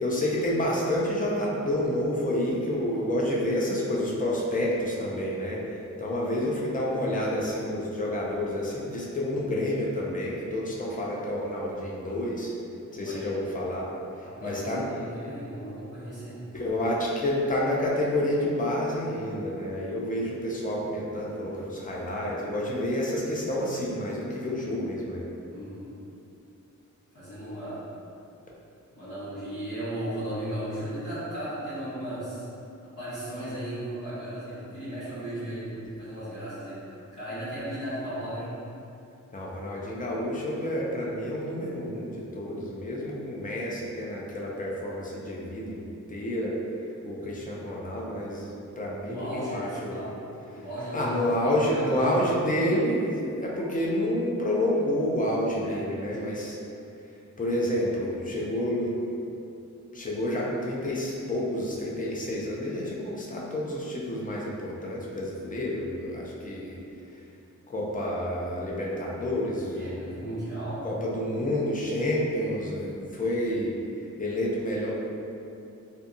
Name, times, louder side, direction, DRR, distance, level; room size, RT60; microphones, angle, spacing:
voice 1, 0.0-5.6 6.0-12.5 12.9-13.9 14.4-14.9 16.5-25.2 39.3-46.5 47.0-50.0 50.9-56.6 57.4-58.9 59.9-66.8 67.7-70.1 70.8-73.7 74.2-74.9, left 1 dB, 30° left, -4 dB, 0.4 m, -29 dB
voice 2, 13.0-13.4 14.2-16.5 25.5-25.9 27.1-27.8 28.9-32.5 32.8-38.5 49.0-50.1 50.5-52.1 55.6-55.8 65.4-65.6 69.7-70.8, right 1 dB, 85° left, -13 dB, 1.4 m, -36 dB
2.6 x 2.2 x 2.5 m, 2.7 s
wide cardioid pair, 140°, 30 cm